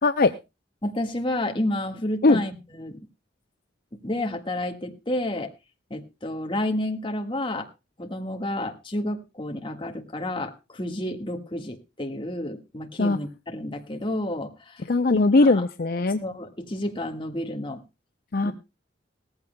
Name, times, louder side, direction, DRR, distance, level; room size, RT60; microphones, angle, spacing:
voice 1, 0.0-0.3 2.2-2.4 13.0-13.2 14.9-16.2 18.3-18.5, left 3 dB, 55° left, 9 dB, 0.6 m, -19 dB
voice 2, 0.8-3.0 3.9-5.5 5.9-7.7 8.0-14.8 15.5-15.6 16.2-17.8 18.4-18.5, left 1 dB, 30° left, 3 dB, 1.6 m, -30 dB
18.5 x 14.5 x 2.2 m, 0.26 s
head